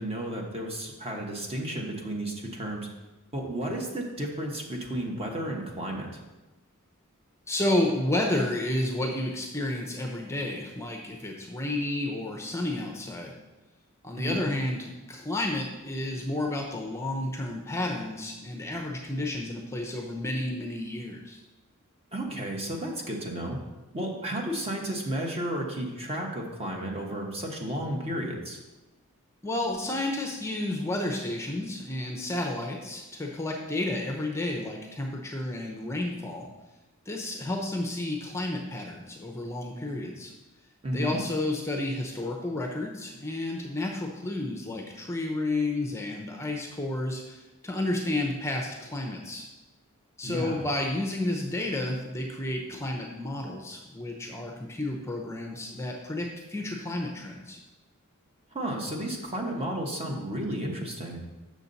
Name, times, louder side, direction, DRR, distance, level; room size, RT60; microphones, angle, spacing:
voice 1, 0.0-2.9 3.3-6.1 14.2-14.4 22.1-23.6 23.9-28.6 40.8-41.2 50.2-50.6 58.5-61.2, right 1 dB, 30° right, 0 dB, 1.2 m, -32 dB
voice 2, 7.5-13.3 14.0-21.4 29.4-36.5 37.1-40.3 40.9-49.5 50.2-57.6, left 1 dB, 15° left, 1 dB, 0.7 m, -31 dB
7.3 x 6.4 x 4.1 m, 1.1 s
head